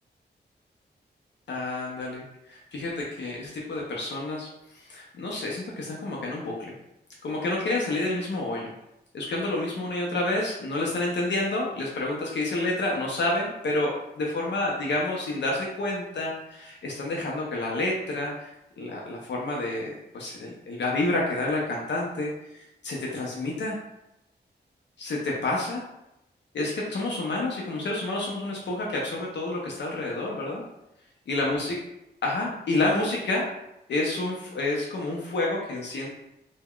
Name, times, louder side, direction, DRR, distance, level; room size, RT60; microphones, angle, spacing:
voice 1, 1.5-4.5 4.7-6.7 7.2-8.7 9.1-18.5 18.8-23.8 25.0-25.8 26.5-30.6 31.3-31.8 32.2-33.5 33.9-36.1, left 2 dB, 80° left, -2 dB, 0.5 m, -29 dB
2.2 x 2.1 x 3.5 m, 0.88 s
wide cardioid pair, 175°, 18 cm